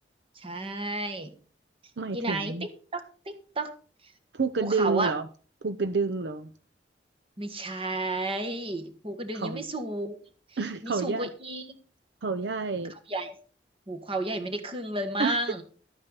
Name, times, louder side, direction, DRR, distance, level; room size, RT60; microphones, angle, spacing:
voice 1, 0.4-1.3 2.1-2.5 2.9-3.7 4.6-5.1 7.4-10.2 10.8-11.6 13.1-13.3 13.9-15.6, right 2 dB, 30° right, 1.5 m, -32 dB
voice 2, 2.0-2.7 4.3-5.3 5.6-6.5 9.3-9.6 10.6-11.3 12.2-12.9 15.2-15.4, right 4 dB, 70° right, 0.7 m, -29 dB
12.5 x 8.8 x 4.0 m
head